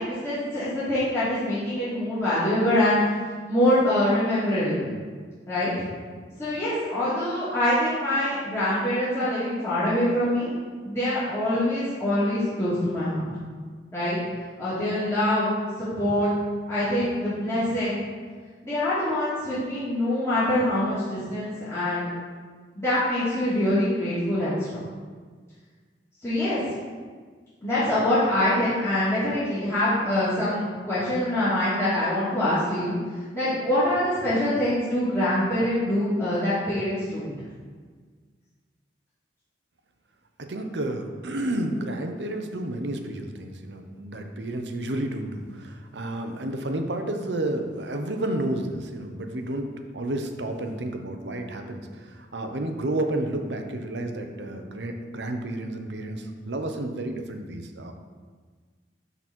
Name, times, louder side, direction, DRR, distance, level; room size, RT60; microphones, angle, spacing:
voice 1, 0.0-3.1 3.5-4.9 5.5-5.7 6.4-10.5 10.8-13.3 13.9-14.2 14.6-16.3 16.7-18.0 18.6-22.0 22.8-24.8 26.2-26.6 27.6-32.9 33.3-37.3, left 1 dB, 15° left, -13 dB, 2.5 m, -24 dB
voice 2, 40.4-49.7 49.9-57.9, right 1 dB, 75° right, 5 dB, 0.9 m, -31 dB
12.0 x 4.1 x 4.4 m, 1.5 s
head